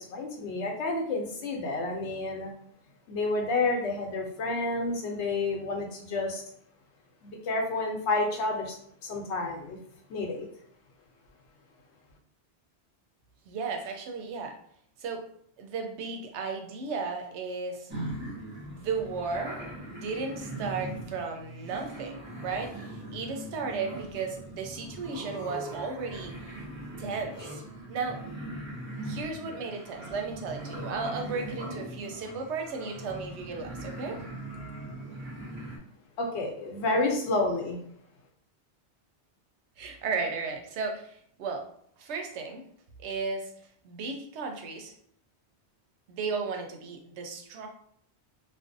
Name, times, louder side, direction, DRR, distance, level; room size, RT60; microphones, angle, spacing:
voice 1, 0.0-2.5 3.1-6.4 7.2-9.8 10.1-10.5 36.2-37.8, left 2 dB, 85° left, 2 dB, 0.9 m, -30 dB
voice 2, 13.5-14.6 15.0-15.2 15.6-17.9 18.6-19.6 19.9-26.6 27.0-27.6 27.9-28.2 29.0-34.2 39.8-41.7 42.0-42.6 43.0-43.5 43.8-44.9 46.1-47.7, right 4 dB, 90° right, 3 dB, 0.9 m, -35 dB
sound 1, 17.9-35.8, right 1 dB, 15° right, 0.6 m, -40 dB
2.5 x 2.1 x 2.5 m, 0.67 s
omnidirectional pair, 1.1 m